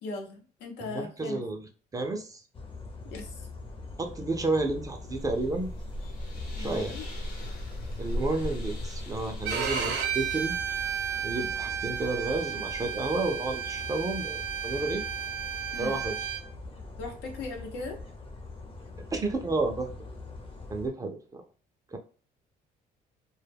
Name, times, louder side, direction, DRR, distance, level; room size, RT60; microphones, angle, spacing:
voice 1, 0.0-1.4 3.0-3.5 6.6-7.0 15.7-16.0 17.0-18.0, left 3 dB, 90° left, 1 dB, 0.8 m, -38 dB
voice 2, 0.8-1.7 1.9-2.4 4.0-5.7 6.6-7.0 8.0-10.8 11.2-15.0 15.8-16.1 19.0-19.9 20.7-21.4 21.9-22.0, right 2 dB, 20° right, 4 dB, 0.5 m, -31 dB
sound 1, 2.5-20.9, left 3 dB, 30° left, 0.7 m, -43 dB
sound 2, 4.7-10.1, equal, 60° left, 1.0 m, -37 dB
Bowed string instrument, 9.4-16.4, right 8 dB, 75° right, 0.6 m, -33 dB
2.2 x 2.1 x 3.3 m, 0.40 s
cardioid pair, 110°, 17 cm